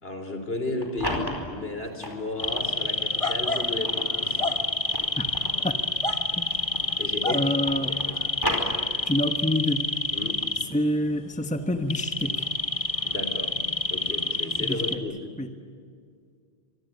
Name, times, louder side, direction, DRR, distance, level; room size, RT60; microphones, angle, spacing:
voice 1, 0.0-4.7 7.0-7.5 7.8-8.2 10.1-10.4 13.0-13.5 13.9-15.1, left 2 dB, 65° left, 7 dB, 4.2 m, -33 dB
sound 1, 0.6-2.7 3.3-7.0 7.3-9.3, equal, 20° right, 4.8 m, -35 dB
sound 2, 2.4-14.9, left 2 dB, 30° left, 1.7 m, -28 dB
voice 2, 7.3-7.9 9.0-9.8 10.7-12.5 14.6-15.0 15.4-15.5, left 1 dB, 5° left, 7 dB, 1.2 m, -27 dB
25.5 x 24.0 x 9.3 m, 2.1 s
omnidirectional pair, 1.1 m